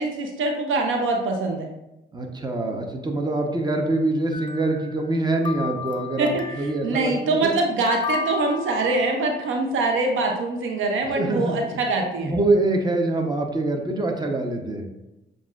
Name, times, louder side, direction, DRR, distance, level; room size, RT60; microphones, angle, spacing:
voice 1, 0.0-1.7 6.2-12.3, right 2 dB, 70° right, 2 dB, 0.7 m, -24 dB
voice 2, 2.1-7.5 11.2-11.6 12.2-14.8, right 2 dB, 20° right, 3 dB, 0.8 m, -24 dB
sound 1, 4.3-5.2 5.4-6.9 7.9-9.5, left 6 dB, 20° left, 0.5 m, -33 dB
7.0 x 2.6 x 2.4 m, 0.93 s
supercardioid pair, 60°, 21 cm